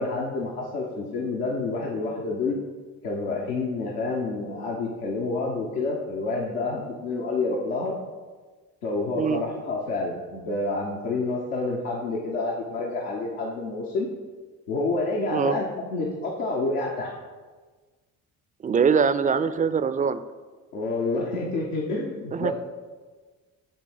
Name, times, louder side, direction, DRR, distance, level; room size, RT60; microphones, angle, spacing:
voice 1, 0.0-2.6 3.0-7.9 8.8-14.1 14.7-17.1 20.7-22.5, left 3 dB, 90° left, -3 dB, 0.9 m, -28 dB
voice 2, 18.6-20.2 22.3-22.5, right 6 dB, 20° right, 12 dB, 0.3 m, -23 dB
8.4 x 3.1 x 5.9 m, 1.4 s
hypercardioid pair, 55°, 44 cm